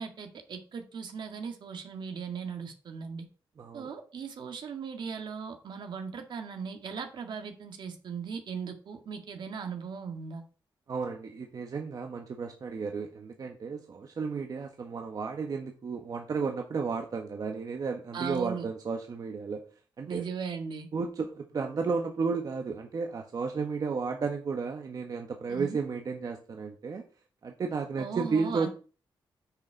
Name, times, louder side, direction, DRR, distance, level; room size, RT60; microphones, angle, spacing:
voice 1, 0.0-3.3 3.7-10.4 18.1-18.7 20.1-20.9 25.5-25.8 28.0-28.7, right 6 dB, 65° right, 5 dB, 1.9 m, -38 dB
voice 2, 3.6-3.9 10.9-19.6 20.0-20.2 20.9-27.0 27.4-28.7, right 5 dB, 45° right, 3 dB, 1.4 m, -33 dB
10.0 x 6.6 x 4.6 m, 0.36 s
wide cardioid pair, 140°, 9 cm